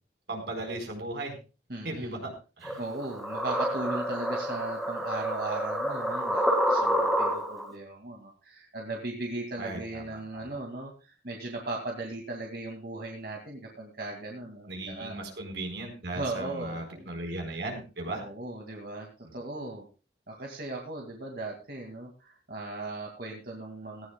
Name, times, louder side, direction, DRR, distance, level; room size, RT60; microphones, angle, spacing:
voice 1, 0.3-1.4 1.8-2.8 9.6-10.6 14.7-18.2 19.2-19.3, right 2 dB, 85° right, 3 dB, 4.2 m, -37 dB
voice 2, 1.7-2.2 2.8-15.2 16.1-17.1 18.1-19.9 20.3-24.1, right 2 dB, 60° right, 0 dB, 2.2 m, -37 dB
sound 1, 2.6-7.7, equal, ahead, 2.0 m, -28 dB
17.5 x 15.5 x 2.3 m, 0.32 s
head